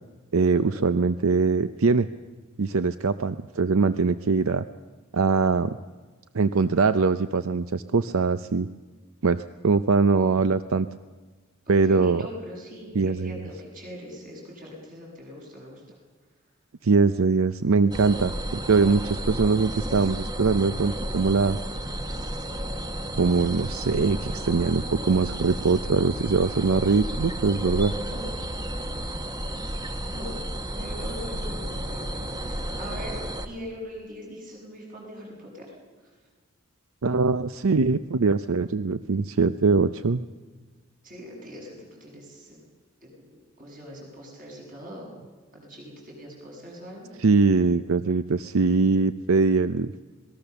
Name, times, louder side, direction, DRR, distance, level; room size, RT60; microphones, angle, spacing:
voice 1, 0.3-2.1 2.6-4.7 5.1-5.8 6.3-8.7 9.2-10.9 11.7-12.3 12.9-13.4 16.8-21.6 23.2-27.9 37.0-40.2 47.2-49.9, right 4 dB, 75° right, 12 dB, 0.6 m, -22 dB
voice 2, 11.7-16.0 27.9-28.2 30.0-30.4 30.7-35.7 36.0-36.1 41.0-42.6 43.0-45.1 45.5-47.1, equal, 40° right, -1 dB, 7.4 m, -41 dB
sound 1, 17.9-33.5, right 1 dB, 20° right, 1.1 m, -32 dB
26.0 x 19.5 x 6.9 m, 1.4 s
head